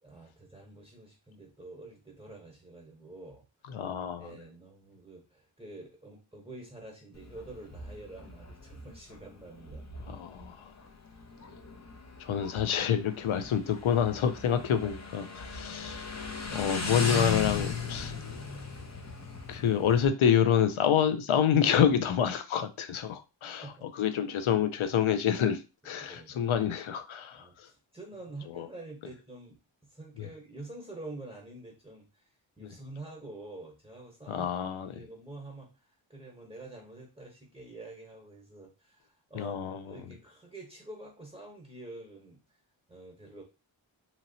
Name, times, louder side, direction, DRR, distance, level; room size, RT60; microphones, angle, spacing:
voice 1, 0.0-3.4 4.2-10.2 14.5-14.9 15.1-15.2 15.6-15.9 23.5-23.9 26.0-26.5 27.4-42.4 42.9-43.4, right 2 dB, 10° right, 0.9 m, -47 dB
voice 2, 3.7-4.3 10.1-10.7 12.2-16.2 16.5-18.1 19.5-23.6 24.0-27.7 28.6-28.7 34.3-35.0 39.3-39.9, left 8 dB, 80° left, 0.6 m, -27 dB
Motorcycle, 7.1-20.1, left 4 dB, 35° left, 0.6 m, -38 dB
2.9 x 2.8 x 2.6 m
cardioid pair, 40°, 48 cm